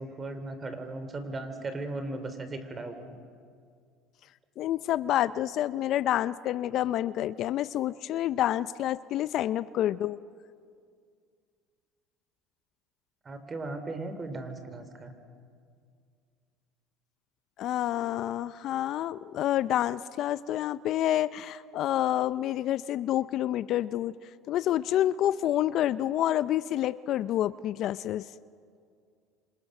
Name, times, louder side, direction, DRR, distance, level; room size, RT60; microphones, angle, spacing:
voice 1, 0.0-3.2 13.2-15.1, right 2 dB, 25° right, 9 dB, 3.5 m, -37 dB
voice 2, 4.6-10.2 17.6-24.1 24.5-28.3, left 12 dB, 55° left, 16 dB, 0.5 m, -28 dB
27.5 x 26.0 x 6.6 m, 2.2 s
supercardioid pair, 95°, 0 cm